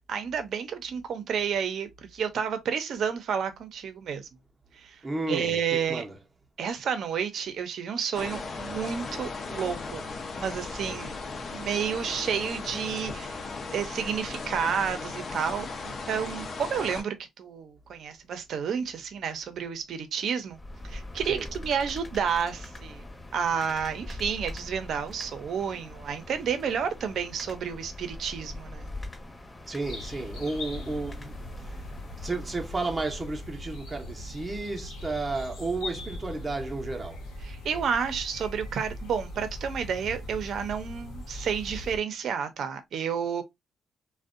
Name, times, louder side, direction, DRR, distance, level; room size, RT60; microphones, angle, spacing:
voice 1, 0.1-4.3 4.7-6.0 6.6-10.0 10.4-11.2 11.5-13.5 13.7-20.6 20.8-23.0 23.3-28.9 37.4-43.4, right 7 dB, 65° right, 0.5 m, -31 dB
voice 2, 5.0-5.6 5.9-6.1 21.3-21.5 29.7-31.4 31.6-31.8 32.2-37.2, right 3 dB, 20° right, 0.6 m, -32 dB
sound 1, 8.1-17.0, left 3 dB, 50° left, 0.5 m, -37 dB
sound 2, 20.5-33.5, left 1 dB, 30° left, 0.8 m, -43 dB
sound 3, 29.8-42.0, left 1 dB, 80° left, 0.8 m, -40 dB
2.5 x 2.1 x 2.4 m
cardioid pair, 90°, 0 cm